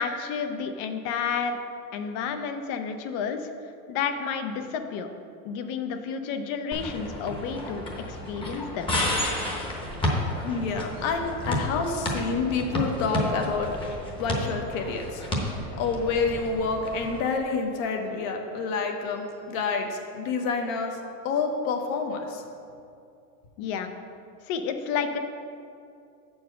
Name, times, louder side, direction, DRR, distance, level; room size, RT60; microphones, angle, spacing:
voice 1, 0.0-1.6 1.9-3.5 3.9-5.1 5.4-9.0 23.6-23.9 24.5-25.2, left 6 dB, 45° left, 7 dB, 0.7 m, -31 dB
sound 1, 6.7-17.2, left 1 dB, 10° left, 1.0 m, -31 dB
voice 2, 10.4-13.7 14.2-15.2 15.8-21.0 21.2-22.4, left 4 dB, 65° left, 3 dB, 1.3 m, -28 dB
7.4 x 4.7 x 6.5 m, 2.5 s
supercardioid pair, 150°, 44 cm